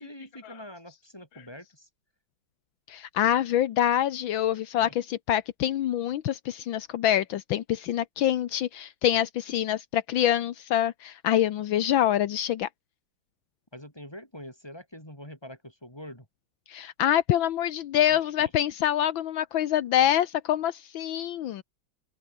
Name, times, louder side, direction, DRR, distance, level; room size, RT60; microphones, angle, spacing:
voice 1, 0.0-1.9 4.5-5.0 13.7-16.3 18.1-18.5, left 1 dB, 10° left, 8.0 m, -45 dB
voice 2, 2.9-12.7 16.7-21.6, left 11 dB, 80° left, 1.7 m, -25 dB
open air
omnidirectional pair, 2.1 m